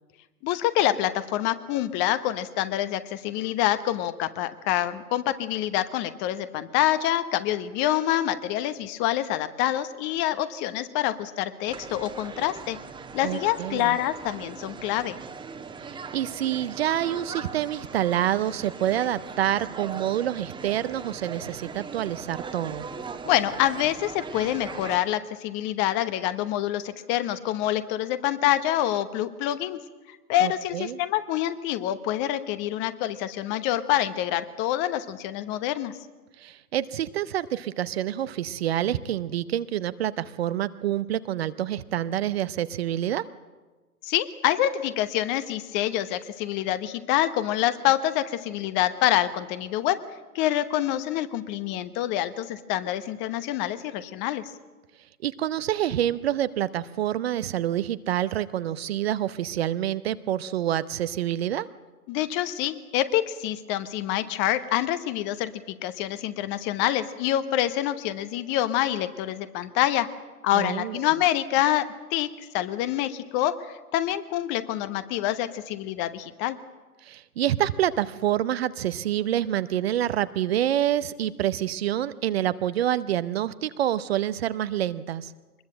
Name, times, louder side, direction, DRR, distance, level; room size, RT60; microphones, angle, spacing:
voice 1, 0.4-12.8 13.1-15.1 23.2-29.8 30.3-35.9 44.0-50.0 50.3-54.5 62.1-70.1 70.4-76.6, left 13 dB, 25° left, 13 dB, 1.0 m, -26 dB
sound 1, 11.7-25.0, right 5 dB, 10° right, 1.4 m, -40 dB
voice 2, 13.2-14.0 15.8-22.9 30.4-31.0 36.4-43.2 55.2-61.7 70.5-71.0 77.0-85.3, right 12 dB, 40° right, 14 dB, 0.8 m, -27 dB
24.0 x 21.0 x 7.7 m, 1.2 s
figure-of-eight pair, 110°, 45 cm